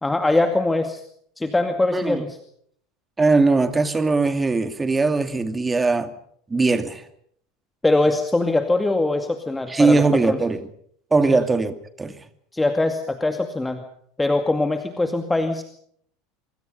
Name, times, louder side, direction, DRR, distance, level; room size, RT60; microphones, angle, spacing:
voice 1, 0.0-1.0 1.4-2.4 7.8-10.4 11.3-11.4 12.5-13.8 14.2-15.6, left 2 dB, 10° left, 2.2 m, -22 dB
voice 2, 1.9-2.2 3.2-6.1 6.5-7.0 9.7-10.6 11.1-12.2, right 3 dB, 15° right, 2.4 m, -20 dB
25.5 x 24.5 x 5.5 m
figure-of-eight pair, 75°, 0 cm